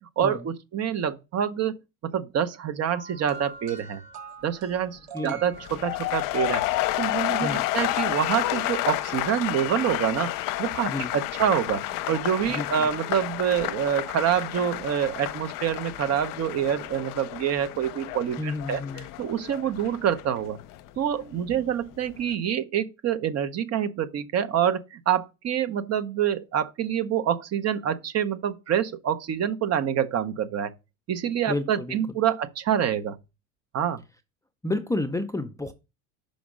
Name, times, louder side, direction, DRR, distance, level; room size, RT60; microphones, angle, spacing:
voice 1, 0.2-1.8 2.1-4.0 4.4-6.7 7.0-10.3 10.6-18.8 19.2-20.6 21.0-30.7 31.1-33.2 33.7-34.0, right 9 dB, 40° right, 0.7 m, -26 dB
sound 1, 2.9-6.4 7.5-7.7, right 4 dB, 85° right, 1.8 m, -44 dB
sound 2, 5.5-21.6 21.9-22.3, left 16 dB, 55° left, 0.6 m, -31 dB
voice 2, 12.5-12.9 18.4-19.1 31.5-32.2 34.6-35.7, left 2 dB, 10° left, 0.5 m, -31 dB
5.2 x 5.0 x 4.9 m
supercardioid pair, 95°, 38 cm